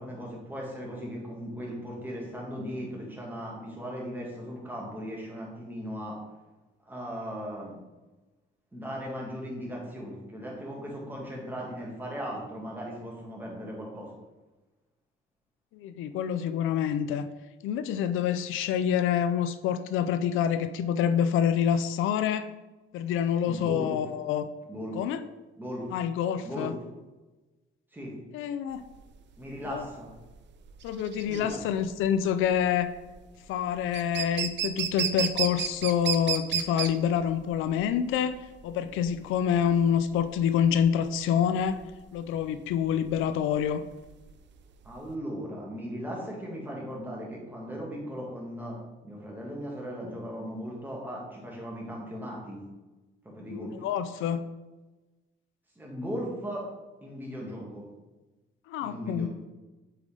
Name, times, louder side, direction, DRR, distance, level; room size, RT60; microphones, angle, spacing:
voice 1, 0.0-6.2 6.8-7.8 8.7-14.1 23.4-23.9 24.7-25.0 25.6-25.9 26.4-26.7 27.9-28.1 29.4-30.1 31.3-31.6 44.8-52.6 53.2-53.7 55.8-56.7 57.0-57.9 58.8-59.3, equal, 10° right, -3 dB, 2.4 m, -37 dB
voice 2, 15.7-17.3 17.6-22.5 22.9-24.4 24.9-25.2 25.9-26.7 28.3-28.8 29.7-29.8 30.8-32.9 33.5-38.4 38.6-41.8 42.1-43.8 53.5-54.4 58.7-59.3, left 8 dB, 90° left, 11 dB, 0.4 m, -27 dB
sound 1, 28.8-45.1, right 9 dB, 65° right, 0.6 m, -34 dB
7.7 x 4.7 x 3.8 m, 1.1 s
cardioid pair, 90°, 20 cm